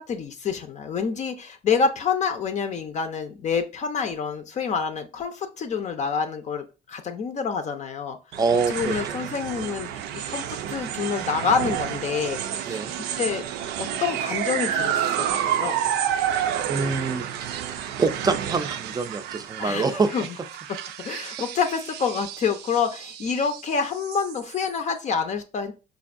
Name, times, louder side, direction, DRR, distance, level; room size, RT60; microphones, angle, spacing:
voice 1, 0.0-8.2 8.7-10.0 10.3-12.8 13.2-13.5 13.8-15.8 19.6-20.3 21.0-25.7, left 6 dB, 45° left, 7 dB, 0.6 m, -27 dB
sound 1, 8.3-24.8, right 9 dB, 85° right, 0.4 m, -30 dB
voice 2, 8.4-9.0 12.7-12.9 16.7-17.6 18.0-20.1, right 4 dB, 25° right, 9 dB, 0.5 m, -25 dB
5.1 x 2.6 x 2.4 m, 0.31 s
cardioid pair, 110°, 17 cm